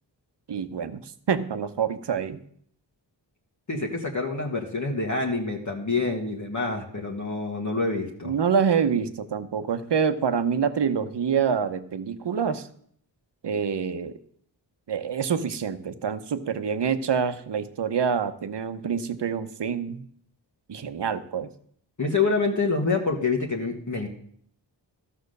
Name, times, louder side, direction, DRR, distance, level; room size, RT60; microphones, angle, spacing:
voice 1, 0.5-2.4 8.2-12.7 13.4-14.2 14.9-20.1 20.7-21.5, right 7 dB, 70° right, 10 dB, 0.9 m, -26 dB
voice 2, 3.7-8.3 22.0-24.1, left 3 dB, 40° left, -1 dB, 1.5 m, -27 dB
13.5 x 5.9 x 6.6 m, 0.64 s
wide cardioid pair, 95°, 44 cm